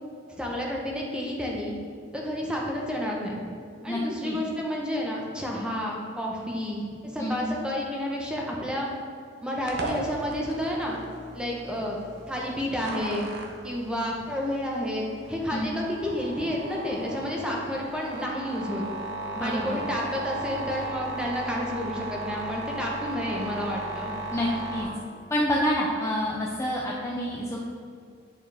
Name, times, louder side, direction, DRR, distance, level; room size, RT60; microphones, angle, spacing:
voice 1, 0.4-1.8 2.1-3.4 3.8-6.9 7.1-8.9 9.4-11.0 11.3-12.0 12.3-13.3 13.6-18.8 19.4-24.1, equal, 5° right, -2 dB, 0.9 m, -30 dB
sound 1, 9.7-24.8, right 2 dB, 60° right, 0.9 m, -36 dB
voice 2, 19.3-19.8 24.3-24.9 25.3-27.6, equal, 15° left, -4 dB, 0.5 m, -28 dB
8.7 x 4.8 x 3.4 m, 2.2 s
head